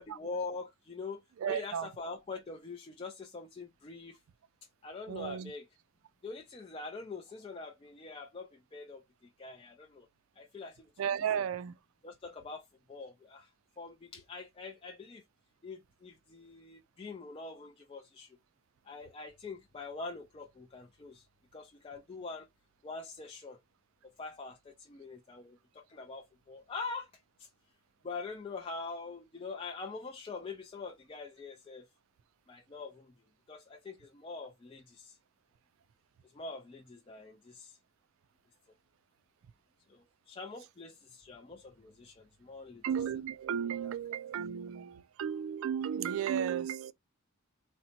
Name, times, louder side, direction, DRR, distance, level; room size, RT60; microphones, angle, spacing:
voice 1, 0.0-4.2 4.8-5.7 6.2-10.1 10.4-11.5 12.0-13.5 13.8-15.2 15.6-18.4 18.8-21.3 21.5-22.5 22.8-23.6 24.2-27.1 27.4-27.5 28.0-31.9 32.5-33.1 33.5-35.2 36.2-37.8 39.9-42.8 43.8-44.2, left 3 dB, 25° left, 0.3 m, -44 dB
voice 2, 1.4-1.9 5.1-5.5 11.0-11.7 42.8-46.9, right 8 dB, 70° right, 0.3 m, -34 dB
3.8 x 2.1 x 2.7 m
head